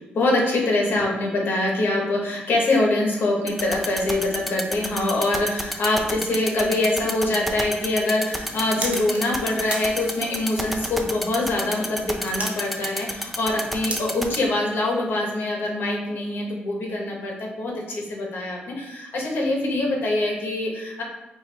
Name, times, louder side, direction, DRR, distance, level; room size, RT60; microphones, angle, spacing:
voice 1, 0.1-21.0, left 2 dB, 65° left, -1 dB, 1.0 m, -24 dB
sound 1, 3.5-14.4, equal, ahead, 0.5 m, -28 dB
sound 2, 8.0-15.3, right 2 dB, 35° right, 0.9 m, -38 dB
4.8 x 2.4 x 3.3 m, 0.97 s
cardioid pair, 80°, 4 cm